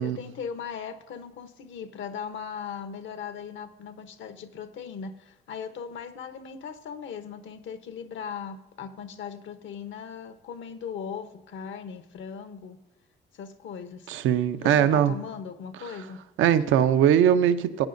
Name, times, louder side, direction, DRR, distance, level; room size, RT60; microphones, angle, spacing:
voice 1, 0.0-12.8 13.3-14.2 14.5-16.2, left 7 dB, 75° left, 0.9 m, -38 dB
voice 2, 14.1-15.1 15.9-16.0 16.4-17.9, right 9 dB, 80° right, 0.6 m, -21 dB
15.5 x 9.6 x 2.6 m
cardioid pair, 90°, 20 cm